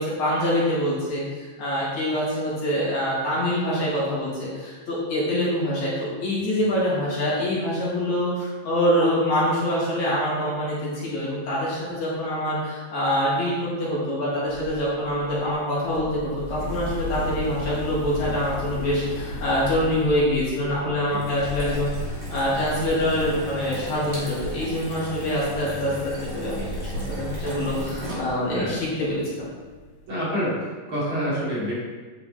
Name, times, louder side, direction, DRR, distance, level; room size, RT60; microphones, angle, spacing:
voice 1, 0.0-29.5, equal, 60° left, -8 dB, 3.5 m, -25 dB
sound 1, 14.5-26.1 26.4-30.1, left 1 dB, 80° left, 1.6 m, -36 dB
voice 2, 20.8-21.2 25.6-25.7 28.5-28.8 30.1-31.7, equal, 40° right, -9 dB, 3.0 m, -28 dB
sound 2, 21.0-28.7, equal, 15° right, 2.2 m, -34 dB
9.6 x 5.9 x 3.9 m, 1.4 s
omnidirectional pair, 3.9 m